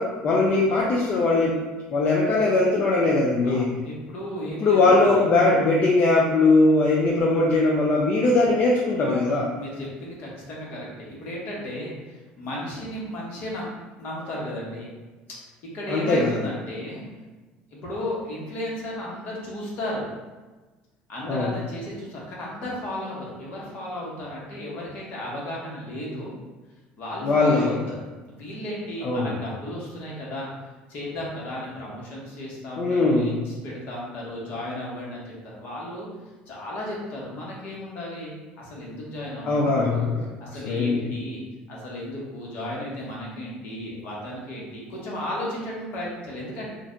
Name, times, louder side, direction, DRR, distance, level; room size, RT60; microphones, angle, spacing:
voice 1, 0.0-1.6 1.9-3.7 4.6-9.5 15.9-16.3 21.3-21.5 27.2-27.8 29.0-29.4 32.8-33.3 39.5-40.2 40.6-41.0, left 2 dB, 40° left, -3 dB, 0.4 m, -20 dB
voice 2, 3.4-5.2 9.0-13.7 14.0-14.9 15.7-17.1 17.7-20.0 21.1-26.3 27.0-28.0 28.3-30.5 30.9-36.1 36.5-40.1 40.4-41.4 41.7-46.7, left 1 dB, 60° left, -4 dB, 1.1 m, -34 dB
2.5 x 2.1 x 3.7 m, 1.2 s
supercardioid pair, 110°, 4 cm